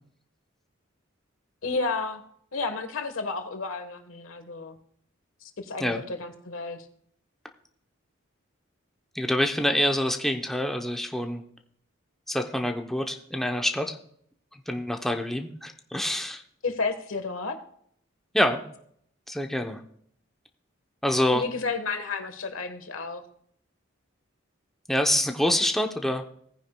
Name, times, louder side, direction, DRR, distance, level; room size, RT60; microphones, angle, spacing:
voice 1, 1.6-2.2 2.5-4.8 5.4-6.9 16.6-17.6 21.3-23.2, left 4 dB, 90° left, 8 dB, 1.3 m, -31 dB
voice 2, 9.1-11.4 12.3-14.0 14.7-16.4 18.3-18.6 19.3-19.8 21.0-21.4 24.9-26.2, left 1 dB, ahead, 3 dB, 0.7 m, -26 dB
18.0 x 9.7 x 2.2 m, 0.66 s
head